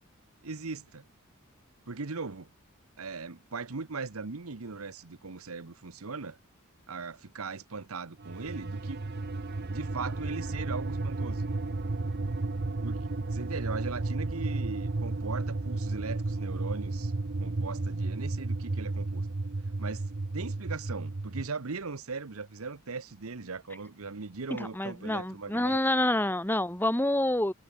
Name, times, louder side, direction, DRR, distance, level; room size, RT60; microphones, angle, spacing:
voice 1, 0.4-1.0 1.9-2.5 3.0-6.4 6.9-9.0 9.7-11.4 12.8-13.0 13.3-17.1 17.4-19.2 19.8-20.1 20.3-25.8, right 4 dB, 80° right, 1.1 m, -39 dB
sound 1, 8.2-21.5, right 2 dB, 50° right, 0.8 m, -33 dB
voice 2, 24.6-27.5, left 1 dB, 10° left, 1.3 m, -27 dB
head